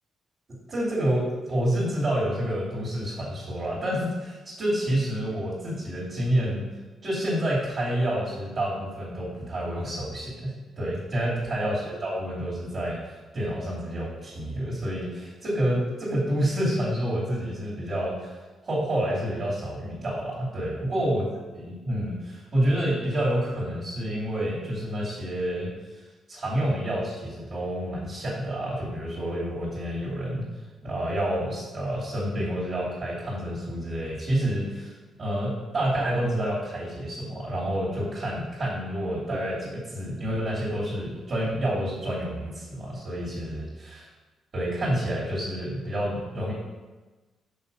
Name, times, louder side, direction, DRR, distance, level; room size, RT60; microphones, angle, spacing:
voice 1, 0.7-6.6 7.0-18.4 18.6-21.3 21.5-26.0 26.3-30.4 30.8-34.9 35.2-44.1 44.5-46.5, right 1 dB, 35° right, -9 dB, 2.7 m, -28 dB
6.9 x 5.7 x 5.4 m, 1.2 s
cardioid pair, 160°, 0 cm